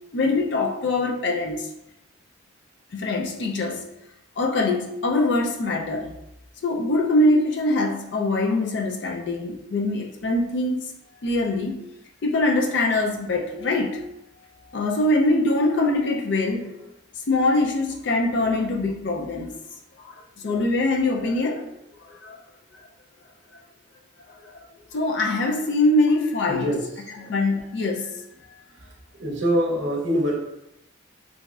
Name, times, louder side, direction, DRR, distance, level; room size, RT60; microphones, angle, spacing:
voice 1, 0.1-1.7 2.9-3.8 4.4-6.1 6.6-10.8 11.2-11.8 12.2-14.0 14.7-16.9 17.3-19.5 20.1-21.7 22.0-22.4 24.9-26.7 27.3-28.2, left 2 dB, 60° left, 1 dB, 0.4 m, -23 dB
voice 2, 26.5-27.3 28.8-28.9 29.2-30.4, equal, 65° right, -1 dB, 0.6 m, -25 dB
3.0 x 2.6 x 2.3 m, 0.84 s
head